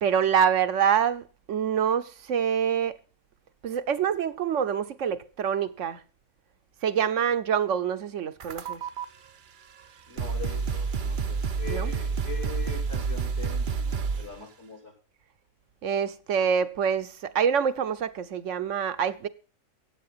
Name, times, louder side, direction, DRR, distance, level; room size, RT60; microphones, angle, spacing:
voice 1, 0.0-3.0 3.6-6.0 6.8-8.8 11.7-12.0 15.8-19.3, right 7 dB, 65° right, 1.1 m, -26 dB
sound 1, 8.4-9.0 9.8-9.9 10.2-14.4, right 5 dB, 45° right, 0.8 m, -29 dB
voice 2, 10.1-14.9, left 6 dB, 55° left, 3.0 m, -42 dB
15.0 x 8.7 x 5.6 m
omnidirectional pair, 1.4 m